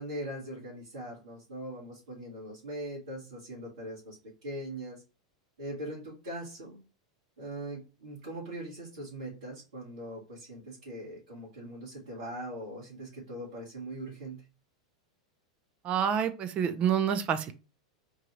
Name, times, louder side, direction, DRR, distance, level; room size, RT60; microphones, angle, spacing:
voice 1, 0.0-5.0 5.6-6.8 7.4-14.5, right 1 dB, 80° right, -9 dB, 1.9 m, -41 dB
voice 2, 15.8-17.5, right 8 dB, 35° right, 12 dB, 0.6 m, -28 dB
3.8 x 2.7 x 3.1 m, 0.32 s
hypercardioid pair, 100°, 3 cm